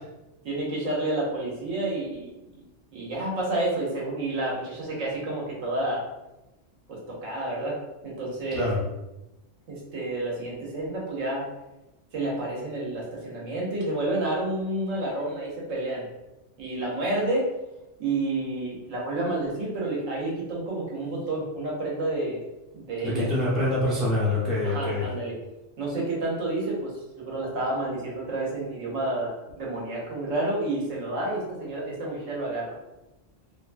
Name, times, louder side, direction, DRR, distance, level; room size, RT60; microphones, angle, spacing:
voice 1, 0.4-2.3 2.9-6.0 6.9-7.8 8.0-8.7 9.7-11.5 12.1-16.1 16.6-17.5 18.0-22.4 22.7-23.3 24.6-25.3 25.8-32.8, right 2 dB, 80° right, -4 dB, 1.2 m, -29 dB
voice 2, 23.0-25.1, left 1 dB, ahead, -6 dB, 0.4 m, -25 dB
2.8 x 2.2 x 2.4 m, 0.98 s
omnidirectional pair, 1.3 m